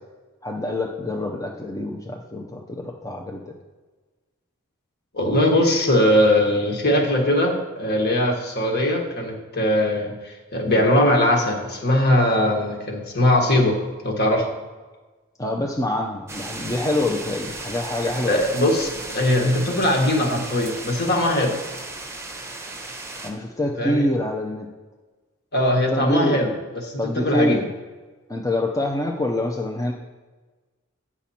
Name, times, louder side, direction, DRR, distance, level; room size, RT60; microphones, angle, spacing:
voice 1, 0.4-3.5 15.4-18.4 23.2-24.7 25.9-26.4 27.0-27.7 28.3-29.9, left 1 dB, 15° left, 1 dB, 0.6 m, -25 dB
voice 2, 5.1-14.5 18.3-21.6 23.8-24.1 25.5-26.5 26.8-27.7, left 1 dB, 50° left, 2 dB, 1.5 m, -20 dB
sound 1, 16.3-23.3, right 2 dB, 15° right, 0.8 m, -35 dB
8.7 x 6.0 x 4.3 m, 1.3 s
head